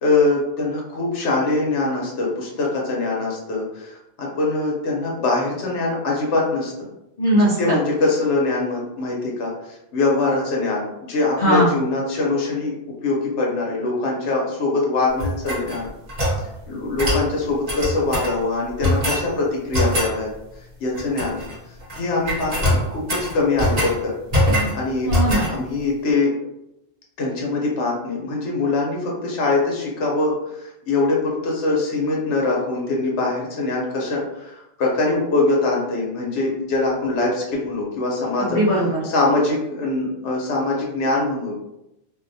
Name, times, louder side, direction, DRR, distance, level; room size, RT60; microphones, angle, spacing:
voice 1, 0.0-6.7 7.6-12.7 13.0-15.9 16.7-20.3 20.8-21.4 21.9-24.1 24.7-25.1 25.4-26.3 27.2-38.6 39.0-41.5, left 3 dB, 80° left, -2 dB, 1.0 m, -23 dB
voice 2, 7.2-7.8 11.4-11.7 25.0-25.5 38.4-39.0, equal, 55° left, -6 dB, 0.7 m, -19 dB
sound 1, 15.2-16.4 17.0-17.3 17.7-18.3 18.8-19.3 19.7-20.1 20.9-21.5 21.8-22.0 22.3-24.0 24.3-24.8 25.1-25.5, left 1 dB, 40° right, 0.9 m, -22 dB
2.6 x 2.1 x 2.6 m, 0.88 s
omnidirectional pair, 1.2 m